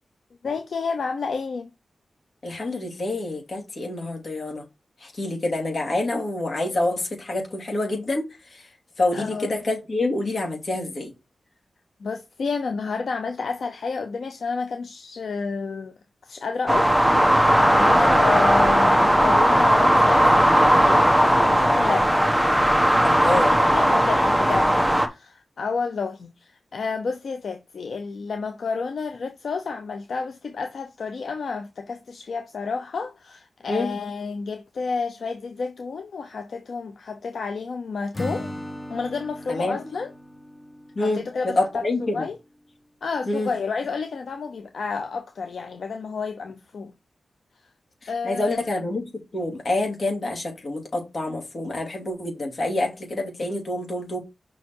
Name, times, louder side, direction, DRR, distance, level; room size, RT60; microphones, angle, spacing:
voice 1, 0.4-1.7 9.1-9.5 12.0-15.9 16.2-17.0 17.5-22.2 23.3-24.8 25.0-38.5 38.9-40.1 41.0-42.4 43.0-46.9 48.1-48.6, left 4 dB, 80° left, 0.7 m, -30 dB
voice 2, 2.4-4.6 5.0-8.7 9.0-11.1 18.0-18.2 23.0-23.5 33.7-33.9 39.5-39.8 40.9-42.3 43.3-43.5 48.0-54.2, left 2 dB, 55° left, 2.7 m, -27 dB
sound 1, 16.7-25.1, equal, 5° right, 1.0 m, -17 dB
Acoustic guitar / Strum, 38.1-42.0, left 1 dB, 25° left, 0.9 m, -37 dB
5.7 x 4.7 x 4.7 m
wide cardioid pair, 115°, 0 cm